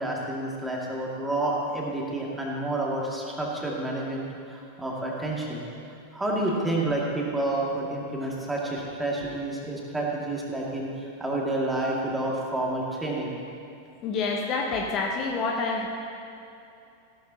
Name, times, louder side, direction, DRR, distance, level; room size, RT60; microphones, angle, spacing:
voice 1, 0.0-5.6 6.1-13.4, right 2 dB, 5° right, -3 dB, 2.3 m, -29 dB
voice 2, 14.0-15.9, left 4 dB, 35° left, 0 dB, 1.1 m, -27 dB
16.0 x 12.5 x 2.9 m, 2.7 s
figure-of-eight pair, 90°, 0 cm